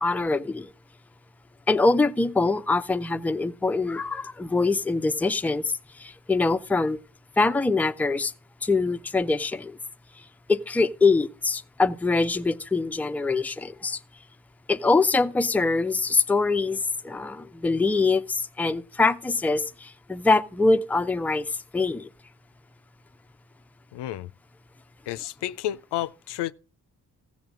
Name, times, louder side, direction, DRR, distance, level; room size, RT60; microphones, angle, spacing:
voice 1, 0.0-0.7 1.7-7.0 7.4-8.3 8.6-9.8 10.2-10.3 10.5-14.0 14.7-22.1, left 3 dB, 5° left, 0.4 m, -24 dB
voice 2, 23.9-24.3 25.1-26.5, left 13 dB, 75° left, 0.5 m, -31 dB
15.0 x 7.2 x 3.7 m
supercardioid pair, 40°, 42 cm